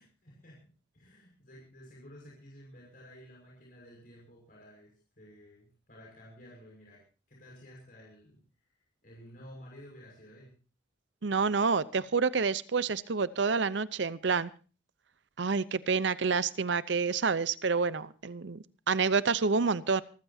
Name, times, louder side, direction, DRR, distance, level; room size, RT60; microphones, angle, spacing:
voice 1, 0.0-10.5, equal, 50° left, -3 dB, 6.1 m, -53 dB
voice 2, 11.2-14.5 15.4-20.0, right 5 dB, 75° right, 16 dB, 0.7 m, -28 dB
26.0 x 15.0 x 2.7 m, 0.35 s
head